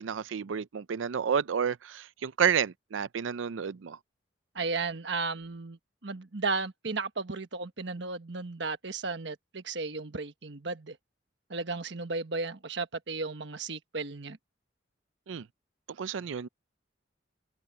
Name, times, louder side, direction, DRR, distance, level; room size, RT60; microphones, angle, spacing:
voice 1, 0.0-4.0 15.3-15.5 16.0-16.5, right 7 dB, 85° right, 0.5 m, -30 dB
voice 2, 4.5-11.0 11.5-14.4, right 3 dB, 70° right, 1.3 m, -34 dB
head